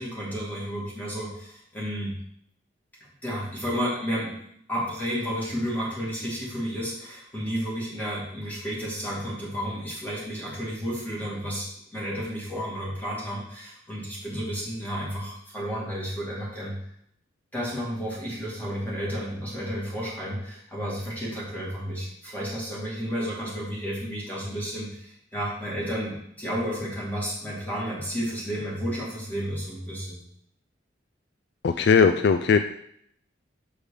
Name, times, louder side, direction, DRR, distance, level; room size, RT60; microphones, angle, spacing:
voice 1, 0.0-2.1 3.2-4.3 4.7-16.8 17.5-30.2, equal, 10° left, -6 dB, 2.5 m, -32 dB
voice 2, 31.6-32.6, left 5 dB, 55° left, 9 dB, 0.3 m, -19 dB
7.1 x 5.0 x 5.0 m, 0.71 s
head